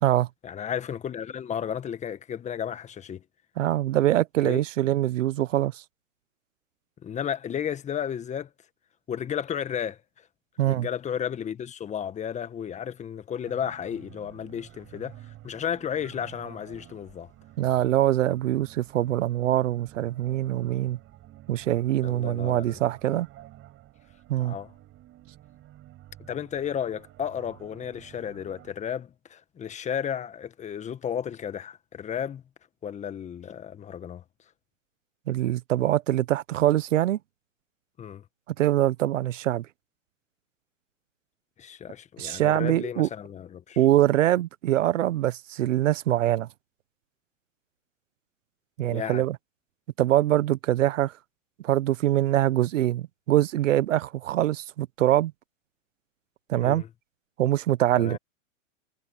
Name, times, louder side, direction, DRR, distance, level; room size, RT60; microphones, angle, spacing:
voice 1, 0.4-3.2 4.4-4.6 7.0-8.5 9.1-10.0 10.6-15.2 15.4-17.3 22.0-22.8 24.4-24.7 26.2-32.4 32.8-34.2 38.0-38.2 41.6-43.8 48.8-49.2 56.6-56.9 58.0-58.2, left 8 dB, 20° left, 1.6 m, -33 dB
voice 2, 3.6-5.8 10.6-10.9 17.6-21.0 21.5-23.3 24.3-24.5 35.3-37.2 38.6-39.7 42.2-43.1 43.8-46.5 48.8-49.4 50.0-51.1 51.6-55.3 56.5-56.8 57.4-58.2, right 13 dB, 70° right, 1.2 m, -24 dB
sound 1, 13.4-28.7, right 14 dB, 30° right, 7.9 m, -50 dB
hypercardioid pair, 130°, 39 cm